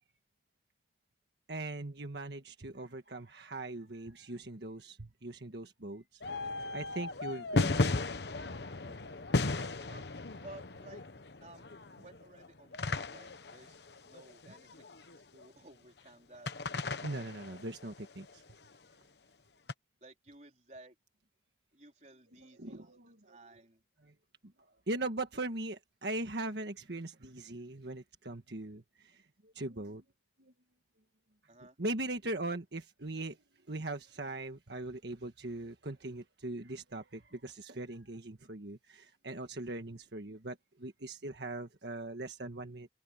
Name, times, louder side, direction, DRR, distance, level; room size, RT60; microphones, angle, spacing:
voice 1, 1.5-6.2 6.7-7.8 8.8-9.0 17.0-18.4 22.6-23.4 24.0-24.1 24.9-30.0 30.4-30.5 31.8-33.4 33.7-42.9, right 2 dB, 70° right, 1.5 m, -40 dB
sound 1, 6.2-15.4 16.5-18.3 19.7-19.8, left 2 dB, 70° left, 1.1 m, -35 dB
voice 2, 10.4-11.0 11.4-11.7 12.0-13.8 14.0-14.7 15.0-16.5 20.0-21.0 21.7-23.8 31.5-31.8, right 2 dB, 40° right, 4.0 m, -55 dB
open air
head